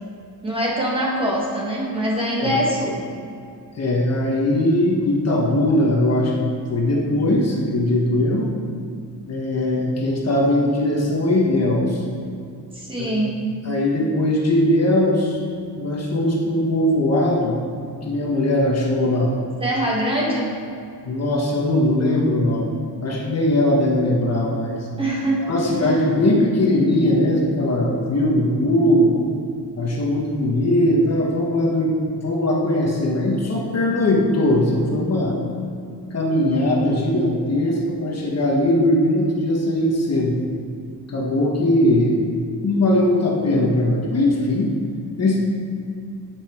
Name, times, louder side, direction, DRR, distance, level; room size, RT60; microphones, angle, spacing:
voice 1, 0.4-3.0 12.7-13.4 19.6-20.5 25.0-25.5 25.8-26.0, right 1 dB, 15° right, -4 dB, 1.7 m, -23 dB
voice 2, 3.7-8.5 9.3-12.0 13.0-13.1 13.6-15.4 15.8-17.6 17.9-19.3 21.0-24.9 25.5-29.2 29.8-35.4 36.1-40.4 41.1-42.2 42.6-44.7 45.2-45.4, left 1 dB, 40° left, -2 dB, 1.3 m, -20 dB
9.7 x 8.3 x 4.4 m, 2.5 s
wide cardioid pair, 175°, 40 cm